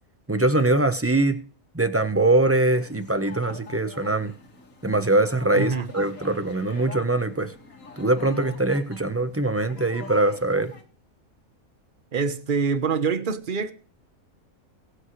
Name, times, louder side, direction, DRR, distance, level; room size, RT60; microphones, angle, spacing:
voice 1, 0.3-1.4 1.7-4.3 4.8-7.5 8.0-10.7, right 2 dB, 10° right, 0.8 m, -22 dB
sound 1, 2.4-10.8, left 3 dB, 65° left, 2.2 m, -45 dB
voice 2, 5.6-5.9 12.1-13.7, right 5 dB, 40° right, 1.1 m, -25 dB
22.5 x 8.1 x 3.2 m
omnidirectional pair, 1.5 m